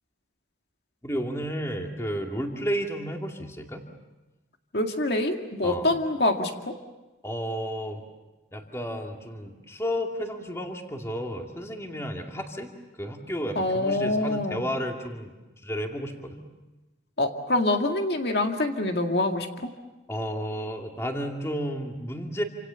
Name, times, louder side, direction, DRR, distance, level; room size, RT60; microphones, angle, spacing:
voice 1, 1.0-3.8 5.6-5.9 7.2-8.0 8.5-12.7 13.0-15.3 15.6-16.4 20.1-22.4, equal, 15° left, 2 dB, 2.4 m, -32 dB
voice 2, 4.7-6.5 13.6-14.6 17.2-19.5, left 2 dB, 60° left, 3 dB, 2.1 m, -25 dB
28.5 x 26.5 x 7.0 m, 1.1 s
head